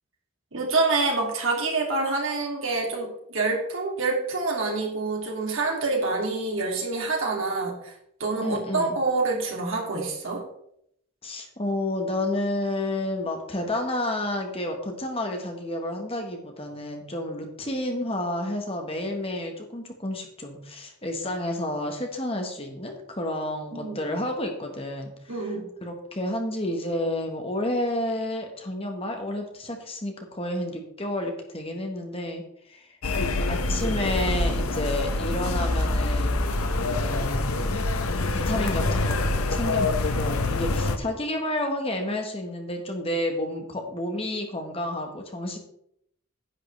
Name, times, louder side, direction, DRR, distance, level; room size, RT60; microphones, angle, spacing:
voice 1, 0.5-7.9 8.2-10.4 23.7-24.0 25.3-25.7, right 3 dB, 65° right, -1 dB, 2.8 m, -27 dB
voice 2, 8.4-9.0 11.2-25.5 25.8-36.5 36.8-37.9 38.3-45.6, left 1 dB, 25° left, 3 dB, 1.4 m, -30 dB
sound 1, 33.0-41.0, left 2 dB, 90° left, 0.9 m, -25 dB
10.5 x 8.9 x 3.4 m, 0.73 s
head